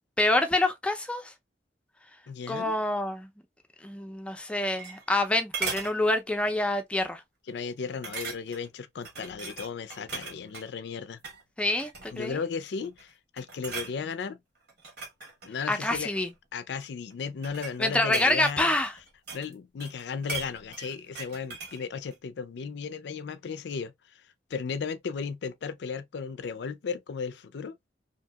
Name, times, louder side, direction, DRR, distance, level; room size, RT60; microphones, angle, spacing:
voice 1, 0.2-1.3 2.5-3.3 3.8-7.2 11.6-12.4 15.7-16.3 17.8-18.9, left 2 dB, 5° left, 0.4 m, -26 dB
voice 2, 2.3-2.7 7.5-11.2 12.1-14.4 15.4-16.1 16.5-18.8 19.3-23.9 24.5-27.8, left 5 dB, 65° left, 0.4 m, -35 dB
sound 1, 4.4-5.2 5.5-5.9 6.5-6.7 7.0-7.1 8.0-8.7 9.0-10.7 11.1-11.4 11.8-12.3 12.8-13.1 13.4-13.9 14.7-16.3 17.1-19.5 19.8-21.8 22.1-22.2, right 4 dB, 60° right, 1.1 m, -38 dB
2.7 x 2.7 x 2.2 m
head